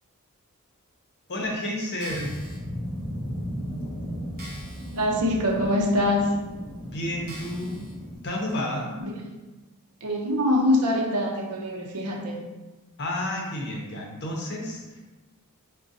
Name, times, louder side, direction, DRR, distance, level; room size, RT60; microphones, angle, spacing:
voice 1, 1.3-2.4 6.9-7.8 8.2-8.9 13.0-15.0, left 1 dB, 50° left, -1 dB, 0.7 m, -30 dB
sound 1, 1.9-2.6 3.3-3.4 3.8-3.9 4.4-5.1 5.5-5.6 6.3-6.4 7.3-7.9 8.5-8.6, right 1 dB, 45° right, 0.9 m, -44 dB
sound 2, 2.1-8.1, equal, 10° left, 1.3 m, -36 dB
voice 2, 4.9-6.3 9.0-9.3 10.0-12.4, left 1 dB, 80° right, 0 dB, 0.6 m, -24 dB
4.7 x 2.2 x 2.6 m, 1.2 s
head